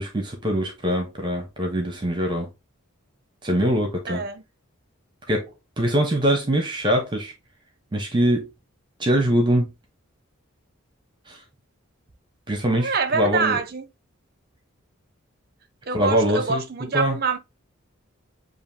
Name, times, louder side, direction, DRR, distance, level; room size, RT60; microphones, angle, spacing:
voice 1, 0.0-2.5 3.4-4.2 5.3-5.5 5.8-7.3 7.9-8.5 9.0-9.7 11.3-11.4 12.5-13.6 15.9-16.6 16.9-17.2, equal, 20° right, 1.0 m, -23 dB
voice 2, 4.1-4.4 12.8-13.9 15.9-17.4, right 4 dB, 45° right, 0.7 m, -25 dB
7.3 x 2.7 x 2.7 m
head